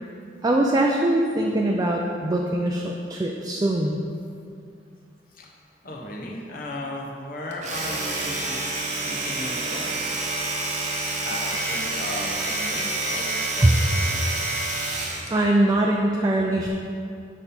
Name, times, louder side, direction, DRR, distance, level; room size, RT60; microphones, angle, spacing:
voice 1, 0.4-4.0 13.6-13.7 15.3-16.7, right 1 dB, 20° right, 0 dB, 0.4 m, -22 dB
voice 2, 5.8-8.6 9.0-10.0 11.2-14.4, left 1 dB, 55° left, -2 dB, 0.9 m, -35 dB
Domestic sounds home sounds, 7.5-15.4, right 2 dB, 40° right, 0.8 m, -28 dB
7.1 x 5.4 x 4.3 m, 2.4 s
head